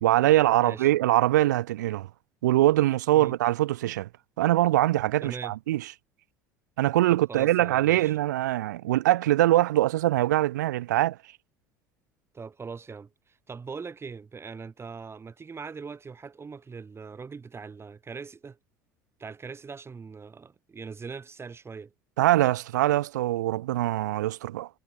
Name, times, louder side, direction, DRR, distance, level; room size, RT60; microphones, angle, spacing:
voice 1, 0.0-2.1 2.4-4.1 4.4-5.8 6.8-11.2 22.2-24.7, right 15 dB, 75° right, 1.5 m, -23 dB
voice 2, 0.6-0.9 3.1-3.4 5.2-5.5 7.1-8.2 12.3-18.6 19.2-21.9, right 5 dB, 25° right, 5.4 m, -41 dB
hypercardioid pair, 70°, 10 cm